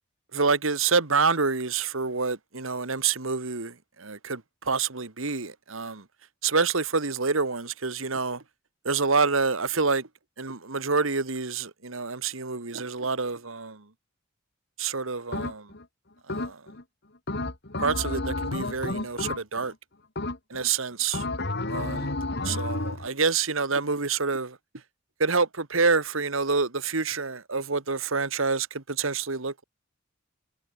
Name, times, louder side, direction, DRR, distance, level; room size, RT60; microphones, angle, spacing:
voice 1, 0.3-3.7 4.0-4.4 4.7-6.0 6.4-8.4 8.9-10.0 10.4-13.8 14.8-15.6 16.3-16.5 17.8-19.7 20.5-21.2 21.7-22.1 22.5-24.5 25.2-29.6, right 4 dB, 70° right, 1.8 m, -27 dB
sound 1, 15.3-15.8 16.3-16.8 17.3-19.7 20.2-20.7 21.1-23.1, left 2 dB, 55° left, 2.9 m, -31 dB
head